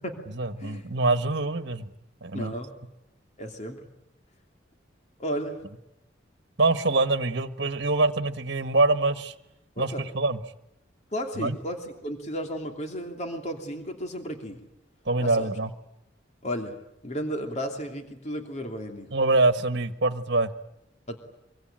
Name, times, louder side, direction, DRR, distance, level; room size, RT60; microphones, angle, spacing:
voice 1, 0.4-1.9 2.2-2.5 6.6-9.3 9.8-10.4 11.4-11.6 15.1-15.7 19.1-20.5, right 2 dB, 60° right, 10 dB, 1.5 m, -24 dB
voice 2, 2.3-2.7 3.4-3.9 5.2-5.6 9.8-10.0 11.1-14.6 15.2-15.5 16.4-16.8 17.0-19.1 21.1-21.2, equal, 35° left, 4 dB, 2.9 m, -33 dB
24.5 x 24.0 x 9.0 m, 0.85 s
head